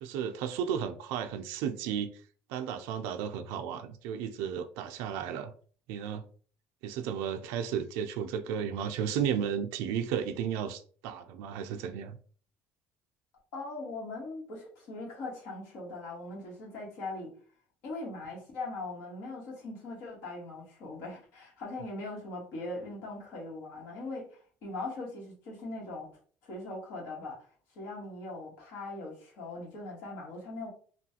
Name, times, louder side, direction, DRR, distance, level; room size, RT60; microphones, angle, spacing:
voice 1, 0.0-2.1 2.5-5.5 5.9-6.2 6.8-12.2, right 8 dB, 85° right, 0.4 m, -33 dB
voice 2, 13.5-17.3 17.8-26.1 26.4-27.4 27.7-30.7, left 2 dB, 70° left, 1.4 m, -40 dB
3.1 x 2.3 x 2.7 m
cardioid pair, 110°, 4 cm